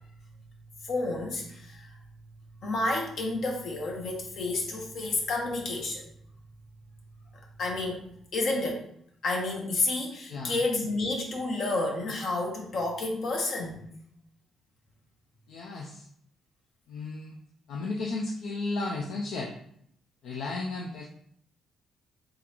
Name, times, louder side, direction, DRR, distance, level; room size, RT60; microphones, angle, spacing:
voice 1, 0.9-1.9 2.6-6.0 7.6-8.0 8.3-8.9 9.2-13.8, left 2 dB, 65° left, 0 dB, 1.1 m, -30 dB
voice 2, 10.3-10.6 15.5-16.1 16.9-17.4 17.7-19.5 20.2-21.1, left 3 dB, 80° left, 0 dB, 0.5 m, -34 dB
3.8 x 3.7 x 3.0 m, 0.68 s
cardioid pair, 90°, 0 cm